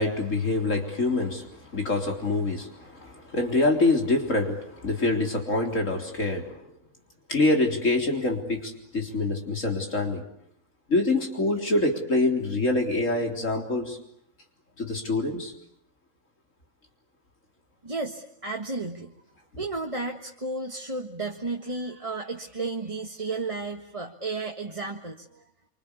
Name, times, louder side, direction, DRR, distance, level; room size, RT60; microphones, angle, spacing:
voice 1, 0.0-6.6 7.3-10.2 10.9-14.0 14.8-15.5, left 2 dB, 70° left, 3 dB, 4.2 m, -25 dB
voice 2, 17.8-19.1 19.6-25.4, right 3 dB, 25° right, 2 dB, 1.7 m, -33 dB
27.0 x 25.5 x 8.4 m, 0.72 s
omnidirectional pair, 1.4 m